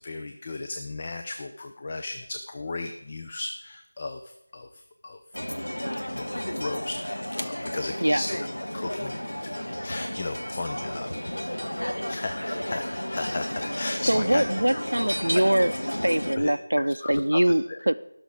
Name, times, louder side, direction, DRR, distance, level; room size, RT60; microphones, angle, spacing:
voice 1, 0.0-5.2 5.8-8.4 8.7-11.1 12.1-14.4 15.3-15.4 16.4-17.8, left 3 dB, 25° left, 6 dB, 0.5 m, -35 dB
sound 1, 5.3-16.3, equal, 85° left, 1.2 m, -32 dB
voice 2, 14.1-15.7 16.0-18.0, right 1 dB, 75° right, 9 dB, 0.5 m, -23 dB
17.5 x 6.3 x 4.9 m, 0.81 s
figure-of-eight pair, 170°, 0 cm